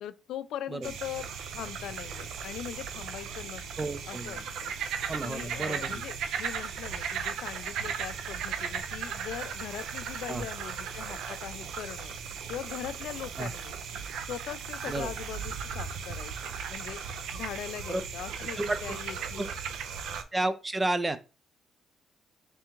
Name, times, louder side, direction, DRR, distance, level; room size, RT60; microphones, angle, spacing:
voice 1, 0.0-12.1 12.5-13.8 14.2-17.0 17.3-19.4, left 10 dB, 80° left, 0.3 m, -41 dB
sound 1, 0.8-20.2, right 7 dB, 80° right, 0.5 m, -37 dB
voice 2, 3.8-4.4 5.1-6.0 10.3-10.5 13.4-13.5 14.9-15.1 17.9-18.0 18.6-19.0 19.4-19.5 20.3-21.2, right 2 dB, 20° right, 0.5 m, -31 dB
3.6 x 3.4 x 3.0 m
cardioid pair, 90°, 0 cm